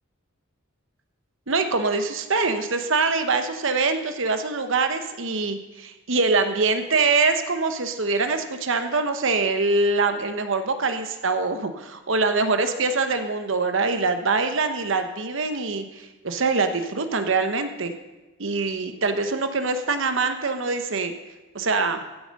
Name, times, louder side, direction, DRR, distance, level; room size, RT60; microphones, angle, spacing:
voice 1, 1.5-17.9 18.4-21.1 21.5-22.0, right 3 dB, 70° right, 8 dB, 1.0 m, -24 dB
15.5 x 7.1 x 5.3 m, 1.1 s
head